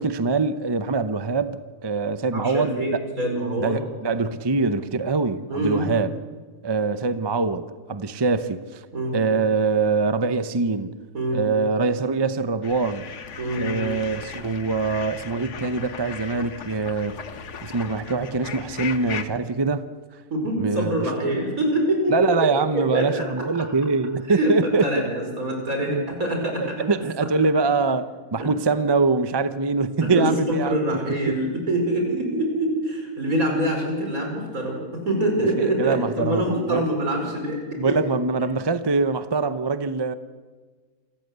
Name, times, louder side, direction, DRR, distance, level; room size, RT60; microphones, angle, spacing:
voice 1, 0.0-3.0 3.6-6.1 6.6-7.6 7.9-8.8 9.1-10.9 11.3-13.1 13.6-17.2 17.6-19.9 20.6-20.9 22.1-25.1 25.9-26.1 26.4-30.7 31.3-31.4 35.8-36.8 37.8-40.1, right 4 dB, 30° right, 11 dB, 0.4 m, -23 dB
voice 2, 2.3-3.8 5.5-5.9 8.9-9.2 11.1-11.4 13.4-13.8 20.3-22.5 22.7-23.3 24.3-26.9 27.2-27.3 28.4-28.5 30.0-38.0, right 1 dB, 60° right, 1 dB, 5.7 m, -25 dB
sound 1, 12.6-19.2, left 7 dB, 50° left, 1.3 m, -37 dB
27.5 x 14.5 x 8.1 m, 1.4 s
omnidirectional pair, 1.7 m